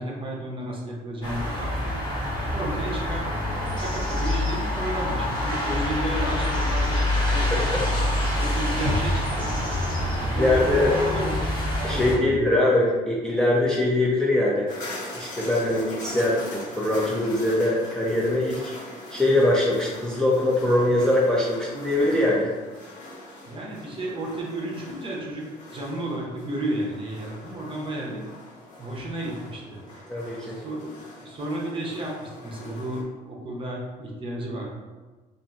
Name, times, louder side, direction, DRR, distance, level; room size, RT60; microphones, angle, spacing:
voice 1, 0.0-2.0 2.4-3.2 3.8-7.9 8.3-11.3 11.9-12.6 23.5-25.4 25.7-28.2 28.8-29.8 30.4-34.7, right 1 dB, 30° right, -3 dB, 0.7 m, -33 dB
sound 1, 1.2-12.2, left 1 dB, 25° left, 0.9 m, -26 dB
voice 2, 10.3-10.9 11.8-14.7 15.1-18.7 19.1-22.5 30.1-30.6, left 1 dB, 5° left, -5 dB, 0.4 m, -22 dB
sound 2, 14.7-33.0, left 1 dB, 50° left, 0.8 m, -42 dB
2.7 x 2.5 x 2.4 m, 1.3 s
cardioid pair, 110°, 17 cm